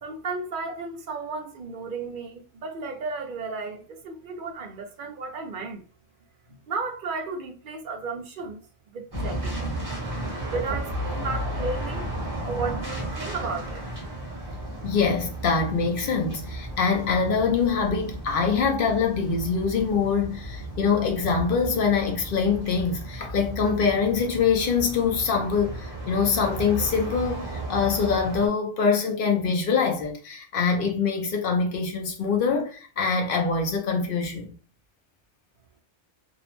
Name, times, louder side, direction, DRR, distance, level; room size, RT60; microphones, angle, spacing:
voice 1, 0.0-5.8 6.5-8.6 8.9-9.7 10.5-12.1 12.4-13.9, right 4 dB, 60° right, 0.6 m, -34 dB
sound 1, 9.1-28.5, right 1 dB, 20° right, 0.7 m, -34 dB
voice 2, 14.7-34.5, left 5 dB, 55° left, 0.7 m, -24 dB
2.6 x 2.0 x 2.9 m
omnidirectional pair, 1.2 m